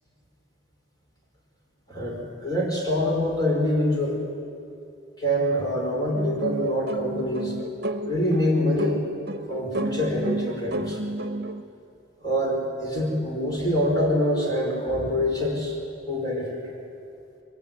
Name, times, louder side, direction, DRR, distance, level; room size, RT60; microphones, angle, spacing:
voice 1, 1.9-4.2 5.2-7.5 8.0-9.0 9.5-11.0 12.2-15.8 16.1-16.6, equal, 20° left, -1 dB, 5.4 m, -25 dB
sound 1, 6.1-11.6, right 1 dB, 50° right, 1.1 m, -32 dB
25.0 x 23.0 x 9.4 m, 2.6 s
head